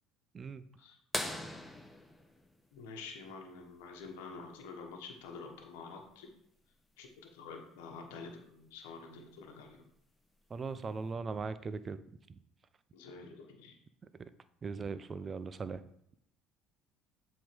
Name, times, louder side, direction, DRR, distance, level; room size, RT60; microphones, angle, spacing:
sound 1, 1.1-3.6 5.5-5.6 7.8-7.9 9.6-9.9 10.7-10.8, left 1 dB, 5° left, 1.2 m, -40 dB
voice 1, 2.7-6.3 7.0-9.8 12.9-13.8, left 4 dB, 80° left, 2 dB, 1.2 m, -48 dB
voice 2, 10.5-12.0 12.3-12.4 14.2-14.3 14.6-15.8, right 4 dB, 35° right, 14 dB, 0.5 m, -39 dB
7.6 x 3.8 x 5.2 m, 0.72 s
hypercardioid pair, 75°, 0 cm